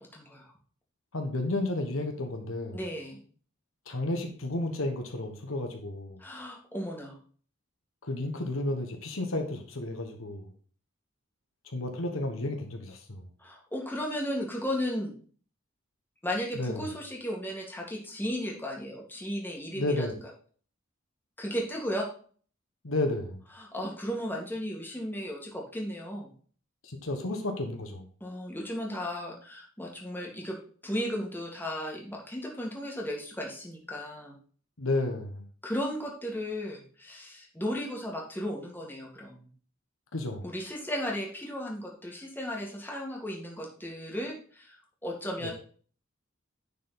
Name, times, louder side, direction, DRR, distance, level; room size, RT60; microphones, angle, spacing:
voice 1, 0.1-0.5 2.7-3.2 6.2-7.2 13.4-15.1 16.2-20.3 21.4-22.1 23.6-26.3 28.2-30.6 30.8-34.3 35.6-39.5 40.4-45.5, equal, 10° left, -1 dB, 2.1 m, -35 dB
voice 2, 1.1-2.8 3.9-6.2 8.0-10.5 11.6-13.3 16.5-16.8 19.7-20.1 22.8-23.4 26.8-28.1 34.8-35.4 40.1-40.5 45.4-45.5, left 2 dB, 75° left, 4 dB, 1.3 m, -32 dB
10.0 x 4.7 x 4.0 m, 0.44 s
head